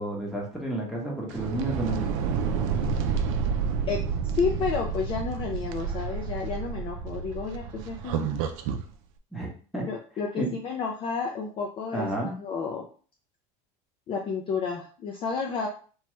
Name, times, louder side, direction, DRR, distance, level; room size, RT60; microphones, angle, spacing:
voice 1, 0.0-2.1 9.3-9.8 10.4-10.5 11.9-12.3, right 1 dB, ahead, -4 dB, 0.9 m, -31 dB
sound 1, 1.3-8.9, right 6 dB, 70° right, 0.4 m, -29 dB
voice 2, 4.3-8.4 9.8-12.9 14.1-15.7, left 5 dB, 30° left, 1 dB, 0.4 m, -31 dB
2.9 x 2.3 x 3.0 m, 0.40 s
supercardioid pair, 135°, 17 cm